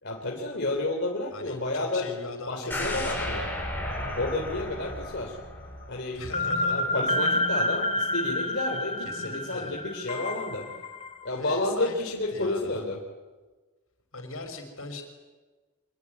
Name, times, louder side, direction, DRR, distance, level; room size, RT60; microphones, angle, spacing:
voice 1, 0.0-2.1 2.5-3.5 4.2-5.4 5.9-6.2 6.7-10.7 11.2-13.0, left 2 dB, 50° left, 1 dB, 3.4 m, -31 dB
voice 2, 1.3-3.2 6.1-6.9 9.0-9.7 11.4-12.8 14.1-15.0, left 2 dB, 70° left, 6 dB, 5.8 m, -39 dB
sound 1, 2.7-6.7 7.0-7.1, left 1 dB, 10° left, 7.3 m, -34 dB
sound 2, 3.9-4.8 5.1-5.2 6.3-11.2, left 1 dB, 25° left, 1.3 m, -29 dB
26.0 x 22.0 x 9.7 m, 1.3 s
head